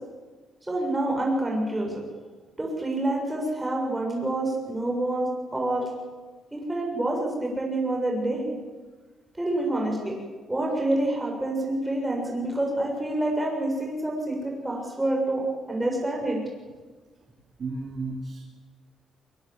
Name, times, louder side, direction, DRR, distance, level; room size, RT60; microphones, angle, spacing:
voice 1, 0.7-2.0 2.6-5.9 6.5-8.5 9.4-10.1 10.5-16.4, right 1 dB, 10° right, -1 dB, 7.2 m, -27 dB
voice 2, 17.6-18.4, right 3 dB, 45° right, 3 dB, 2.8 m, -33 dB
23.0 x 23.0 x 7.7 m, 1.4 s
cardioid pair, 90°, 0 cm